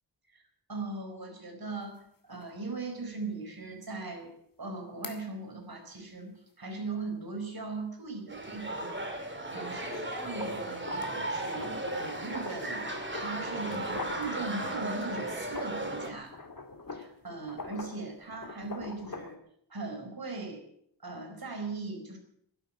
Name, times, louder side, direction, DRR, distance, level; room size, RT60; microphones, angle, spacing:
voice 1, 0.3-4.3 4.6-16.4 16.9-19.4 19.7-20.6 21.0-22.2, right 3 dB, 55° right, 3 dB, 4.7 m, -39 dB
sound 1, 1.8-1.9 2.4-2.5 5.0-5.2 9.7-15.9 16.2-19.4, left 3 dB, 50° left, 2.1 m, -43 dB
sound 2, 8.3-16.1, right 1 dB, 25° right, 2.7 m, -36 dB
12.0 x 11.0 x 9.4 m, 0.70 s
wide cardioid pair, 95°, 44 cm